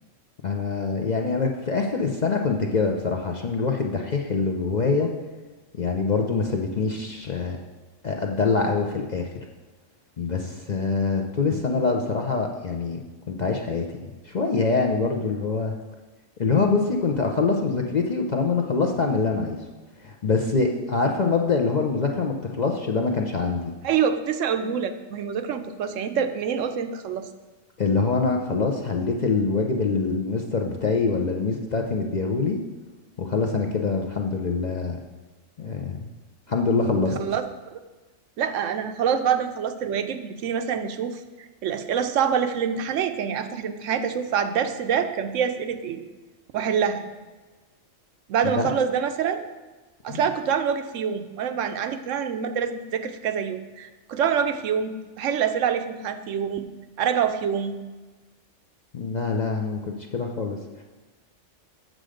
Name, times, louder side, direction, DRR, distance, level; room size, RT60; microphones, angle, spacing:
voice 1, 0.4-5.1 5.8-7.6 8.0-9.3 10.2-13.0 13.3-15.7 16.4-19.6 20.0-23.7 27.8-32.6 33.2-35.0 35.6-36.1 36.5-37.2 48.6-48.7 50.1-50.2 58.9-60.8, left 4 dB, 45° left, 2 dB, 0.6 m, -24 dB
voice 2, 23.8-27.3 37.2-37.4 37.7-37.8 38.4-41.2 41.6-46.0 46.5-47.0 48.3-49.4 50.0-56.7 57.0-57.8, right 7 dB, 75° right, 9 dB, 1.0 m, -26 dB
7.6 x 6.5 x 5.0 m, 1.2 s
omnidirectional pair, 1.3 m